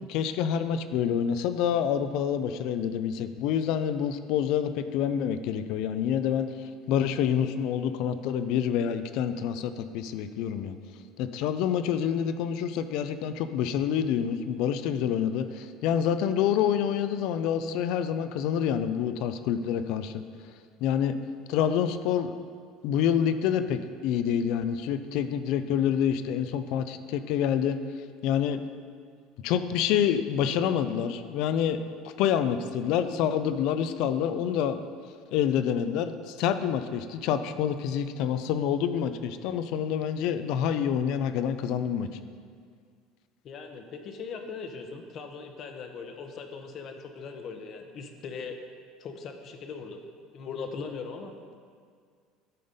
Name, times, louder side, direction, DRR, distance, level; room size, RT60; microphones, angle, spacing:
voice 1, 0.1-6.5 6.9-10.8 11.2-20.2 20.8-21.1 21.5-22.3 22.8-27.8 28.2-28.6 29.4-31.8 32.2-34.8 35.3-42.1, left 8 dB, 65° left, 11 dB, 0.4 m, -27 dB
voice 2, 43.4-48.6 49.0-50.0 50.3-51.3, left 5 dB, 45° left, 5 dB, 0.8 m, -39 dB
10.5 x 4.0 x 5.2 m, 2.1 s
cardioid pair, 125°, 0 cm